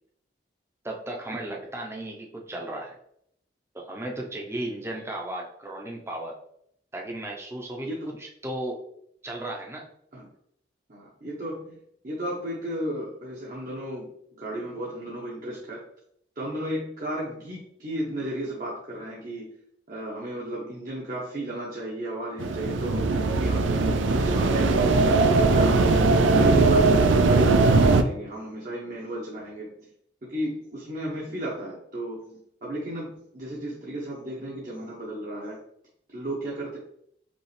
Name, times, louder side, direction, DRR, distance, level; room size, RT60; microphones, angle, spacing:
voice 1, 0.8-3.0 3.7-6.3 6.9-7.9 8.2-8.8 9.2-9.9, right 1 dB, 15° right, 0 dB, 0.7 m, -35 dB
voice 2, 7.8-8.1 10.1-10.3 10.9-11.8 12.0-14.1 14.4-15.8 16.4-19.5 19.9-23.7 24.1-26.0 26.3-29.7 30.2-35.6 36.1-36.8, right 1 dB, 45° right, -5 dB, 0.9 m, -34 dB
sound 1, 22.4-28.0, right 3 dB, 85° right, 0.4 m, -20 dB
5.2 x 2.5 x 3.3 m, 0.70 s
head